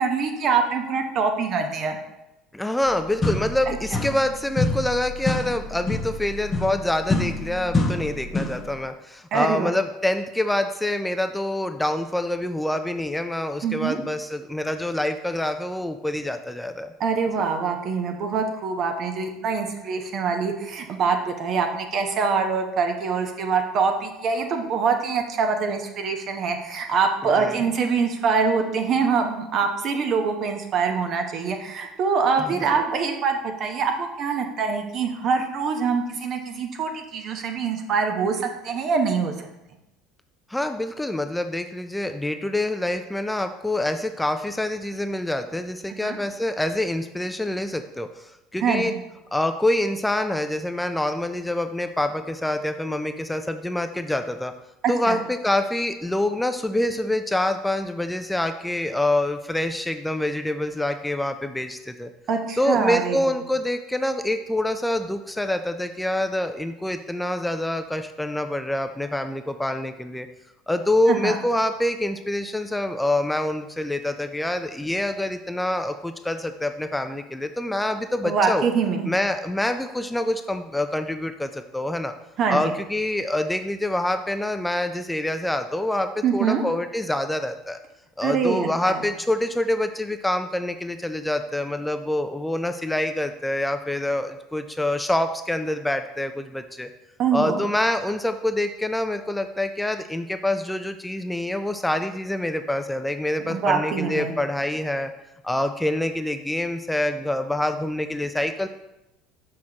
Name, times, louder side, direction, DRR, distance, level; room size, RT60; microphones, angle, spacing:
voice 1, 0.0-2.0 3.7-3.8 9.3-9.7 13.6-14.0 17.0-39.5 46.0-46.2 48.6-49.0 54.8-55.2 62.3-63.3 71.1-71.4 78.2-79.1 82.4-82.6 86.2-86.6 88.2-89.0 97.2-97.6 103.4-104.3, right 5 dB, 50° right, 4 dB, 0.9 m, -24 dB
voice 2, 2.5-16.9 27.4-27.6 32.4-32.8 40.5-49.0 49.3-54.5 54.9-62.1 62.6-70.3 70.7-78.7 79.1-82.1 82.5-87.8 88.2-96.9 97.3-105.1 105.4-108.7, left 1 dB, 5° left, 8 dB, 0.4 m, -26 dB
sound 1, 2.8-2.9 3.2-4.3 4.6-8.7, left 2 dB, 25° left, 0.9 m, -26 dB
6.2 x 5.9 x 2.9 m, 0.92 s
hypercardioid pair, 70°, 0 cm